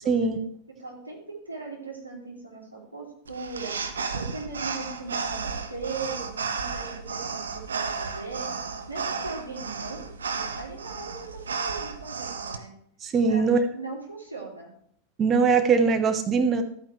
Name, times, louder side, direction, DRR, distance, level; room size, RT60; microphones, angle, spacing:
voice 1, 0.0-0.4 13.0-13.6 15.2-16.6, right 5 dB, 25° right, 7 dB, 1.2 m, -21 dB
voice 2, 0.8-3.7 4.1-8.5 8.9-12.7 13.3-14.7, right 3 dB, 85° right, -3 dB, 3.0 m, -39 dB
sound 1, 3.3-12.6, right 5 dB, 70° right, 0.9 m, -33 dB
13.0 x 8.9 x 3.2 m, 0.66 s
figure-of-eight pair, 90°, 0 cm